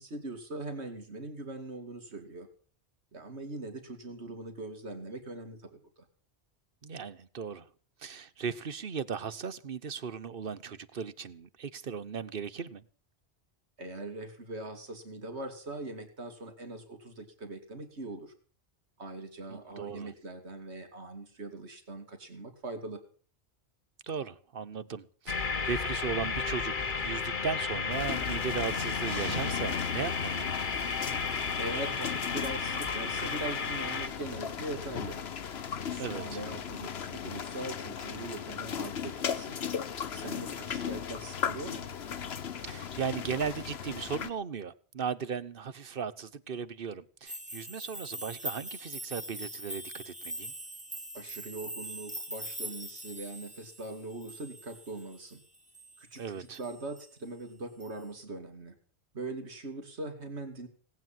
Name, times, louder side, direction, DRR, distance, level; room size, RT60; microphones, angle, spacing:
voice 1, 0.0-2.5 3.1-5.8 13.8-18.3 19.0-23.0 31.5-35.2 35.9-39.6 40.1-41.8 51.1-55.4 56.0-58.8 59.1-60.7, right 2 dB, 85° right, 2.7 m, -41 dB
voice 2, 6.8-7.7 8.0-12.8 19.5-20.1 24.0-30.5 36.0-36.4 42.6-50.5 56.2-56.6, right 6 dB, 60° right, 1.1 m, -37 dB
sound 1, 25.3-34.1, left 5 dB, 50° left, 1.3 m, -33 dB
sound 2, 27.9-44.3, left 7 dB, 70° left, 1.2 m, -37 dB
sound 3, 47.3-56.2 56.5-57.1 57.8-57.9, right 1 dB, 5° right, 1.4 m, -42 dB
18.0 x 9.4 x 7.5 m
omnidirectional pair, 1.1 m